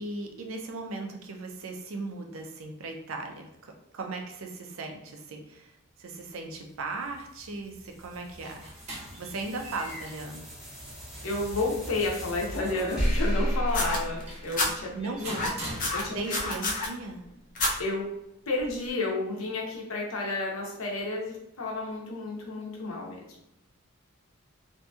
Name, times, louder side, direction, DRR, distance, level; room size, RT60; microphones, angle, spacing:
voice 1, 0.0-5.7 6.0-8.7 9.2-10.5 14.9-15.9 16.1-17.2, right 3 dB, 70° right, 3 dB, 0.5 m, -37 dB
sound 1, 6.5-15.1, equal, ahead, 0.8 m, -34 dB
sound 2, 8.1-16.5, right 1 dB, 30° right, 0.8 m, -44 dB
voice 2, 11.2-15.4 15.9-16.4 17.8-18.1 18.5-23.2, left 2 dB, 70° left, -2 dB, 0.7 m, -31 dB
sound 3, 13.7-14.7 15.3-16.9 17.5-17.7 18.7-18.8, left 2 dB, 40° left, 0.6 m, -28 dB
2.7 x 2.6 x 2.3 m, 0.82 s
head